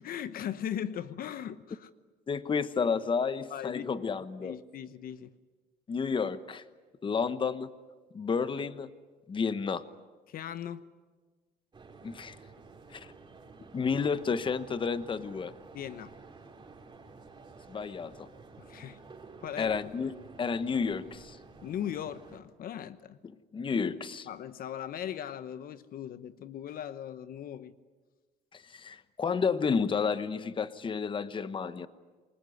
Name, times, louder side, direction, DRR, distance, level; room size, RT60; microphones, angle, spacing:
voice 1, 0.0-1.9 3.5-3.9 4.4-5.4 10.3-10.9 15.7-16.1 18.6-19.0 19.4-19.8 21.6-23.2 24.3-27.7, left 10 dB, 60° left, 13 dB, 1.0 m, -39 dB
voice 2, 2.3-4.6 5.9-6.6 7.0-7.7 8.1-8.9 9.3-9.8 12.0-12.4 12.9-13.1 13.7-15.5 17.7-18.3 19.6-20.1 20.4-21.4 23.5-24.3 28.5-31.9, left 5 dB, 30° left, 13 dB, 1.1 m, -31 dB
sound 1, 11.7-22.4, right 4 dB, 25° right, 3.8 m, -51 dB
27.5 x 20.5 x 9.6 m, 1.4 s
cardioid pair, 110°, 17 cm